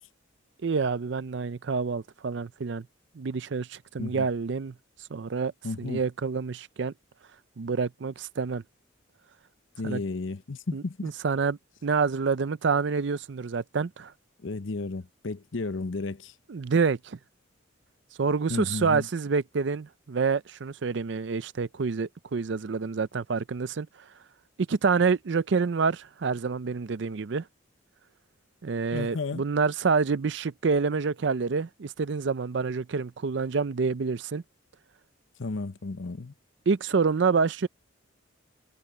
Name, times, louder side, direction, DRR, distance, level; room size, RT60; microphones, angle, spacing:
voice 1, 0.6-2.9 3.2-4.7 5.1-5.5 5.8-6.9 7.6-8.6 9.8-10.0 10.7-14.1 16.5-17.2 18.2-23.9 24.7-27.4 28.6-34.4 36.7-37.7, right 5 dB, 60° right, 0.5 m, -27 dB
voice 2, 5.6-6.0 9.8-11.1 14.4-16.3 18.5-19.1 28.9-29.4 35.4-36.3, left 3 dB, 70° left, 0.8 m, -33 dB
head